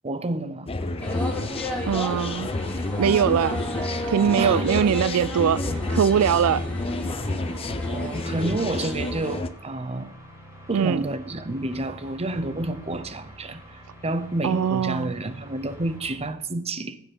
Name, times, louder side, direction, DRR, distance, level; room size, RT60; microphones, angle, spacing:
voice 1, 0.0-0.7 4.4-4.9 7.9-10.1 10.7-17.0, right 2 dB, 30° right, 0.8 m, -29 dB
sound 1, 0.7-9.5, left 2 dB, 25° left, 0.6 m, -30 dB
sound 2, 0.8-16.4, right 1 dB, 10° right, 4.9 m, -45 dB
sound 3, 1.0-9.4, equal, 5° left, 2.9 m, -34 dB
voice 2, 1.9-2.5 3.0-3.6 4.1-5.6 5.9-6.6 10.7-11.0 14.4-15.1, right 8 dB, 75° right, 0.4 m, -21 dB
15.5 x 6.3 x 5.4 m
head